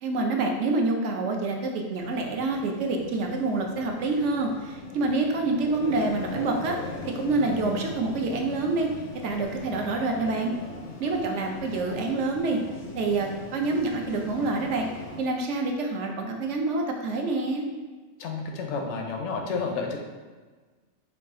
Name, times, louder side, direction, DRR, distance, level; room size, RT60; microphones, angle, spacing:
voice 1, 0.0-6.8 7.0-8.9 9.2-10.5 11.0-12.6 12.9-14.9 15.2-17.7, right 3 dB, 75° right, 2 dB, 0.9 m, -27 dB
sound 1, 2.0-15.2, left 3 dB, 55° left, 0.6 m, -40 dB
voice 2, 18.2-20.0, left 4 dB, 75° left, 2 dB, 0.9 m, -30 dB
4.9 x 2.3 x 3.6 m, 1.4 s
omnidirectional pair, 1.2 m